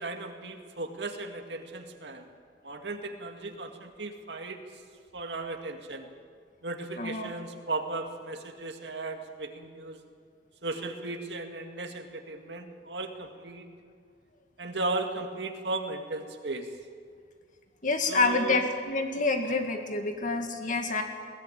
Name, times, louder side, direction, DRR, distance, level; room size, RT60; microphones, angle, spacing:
voice 1, 0.0-2.3 2.6-4.6 5.1-6.1 6.6-10.0 10.6-13.7 14.6-16.7 18.1-18.6, right 2 dB, 80° right, 4 dB, 2.0 m, -36 dB
voice 2, 7.0-7.3 17.8-21.0, left 3 dB, 50° left, 5 dB, 2.1 m, -27 dB
21.5 x 17.0 x 8.9 m, 2.1 s
head